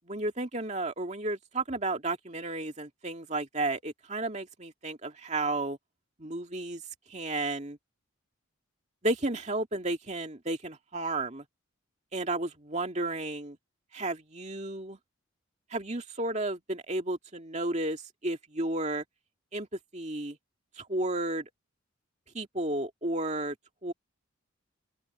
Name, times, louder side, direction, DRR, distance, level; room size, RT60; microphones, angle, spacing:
voice 1, 0.1-5.8 6.2-6.8 7.1-7.8 9.0-11.4 12.1-13.6 13.9-15.0 15.7-19.0 19.5-20.4 20.8-21.5 22.3-23.6 23.8-23.9, right 2 dB, 30° right, 2.4 m, -32 dB
open air
head